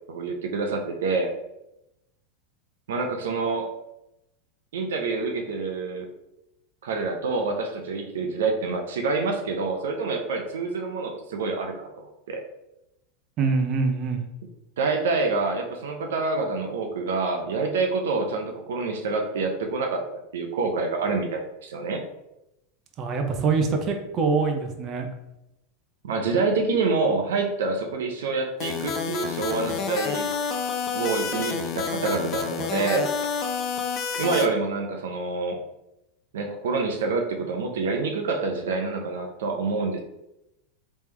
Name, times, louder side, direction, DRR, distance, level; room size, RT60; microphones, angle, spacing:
voice 1, 0.1-1.3 2.9-3.7 4.7-6.1 6.8-12.4 14.8-20.0 20.3-22.0 26.0-30.3 30.9-33.1 34.1-35.6 36.3-40.0, right 3 dB, 85° right, 3 dB, 0.5 m, -27 dB
voice 2, 13.4-14.3 23.0-25.1, right 4 dB, 40° right, 4 dB, 0.6 m, -24 dB
sound 1, 28.6-34.5, left 6 dB, 40° left, 0.5 m, -29 dB
3.4 x 3.1 x 3.2 m, 0.90 s
hypercardioid pair, 115°, 0 cm